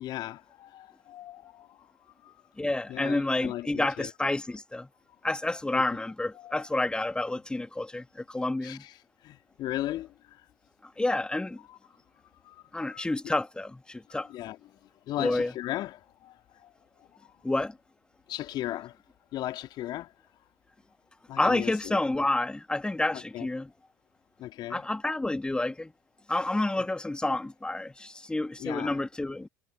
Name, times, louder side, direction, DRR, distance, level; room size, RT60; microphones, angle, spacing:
voice 1, 0.0-1.9 2.2-2.3 2.9-4.1 5.7-6.0 6.4-6.6 8.6-8.9 9.2-10.4 11.7-11.8 12.4-13.1 14.1-14.6 15.1-16.7 18.3-19.0 19.3-20.1 21.3-22.0 23.1-23.5 24.4-24.9 28.6-29.0, left 14 dB, 50° left, 3.7 m, -37 dB
voice 2, 2.6-4.9 5.2-8.8 11.0-11.6 12.7-14.3 15.2-15.5 17.4-17.8 21.4-23.7 24.7-25.9 26.3-29.5, left 2 dB, 10° left, 1.9 m, -29 dB
figure-of-eight pair, 65°, 10 cm